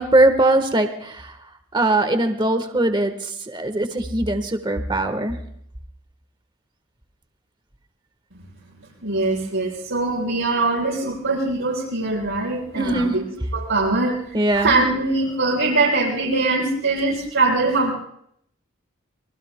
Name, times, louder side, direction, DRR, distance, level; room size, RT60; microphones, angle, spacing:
voice 1, 0.0-1.3 1.7-5.4 12.7-13.3 14.3-14.8, right 2 dB, 25° right, 7 dB, 1.3 m, -21 dB
voice 2, 9.0-13.2 13.5-14.1 14.5-17.9, right 3 dB, 80° right, -5 dB, 6.5 m, -22 dB
28.0 x 23.0 x 2.2 m, 0.69 s
head